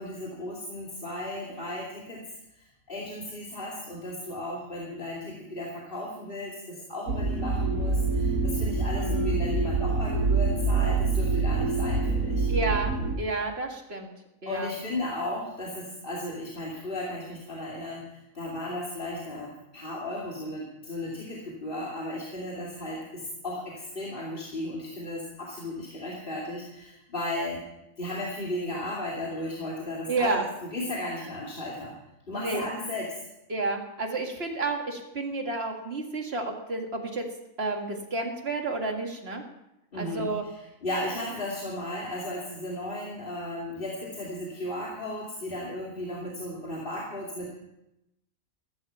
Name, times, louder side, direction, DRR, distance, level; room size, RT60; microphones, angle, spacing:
voice 1, 0.0-2.2 2.6-12.5 14.5-27.6 28.0-30.4 30.7-31.9 32.3-33.1 39.9-47.5, left 1 dB, 40° left, -3 dB, 2.7 m, -35 dB
sound 1, 7.1-13.2, right 3 dB, 85° right, 1.9 m, -26 dB
voice 2, 9.0-9.4 12.5-14.1 14.4-14.7 30.1-30.4 32.3-32.7 33.5-37.3 37.6-39.4 40.0-40.4, right 3 dB, 45° right, 3 dB, 2.2 m, -31 dB
15.0 x 14.0 x 5.6 m, 0.87 s
omnidirectional pair, 1.5 m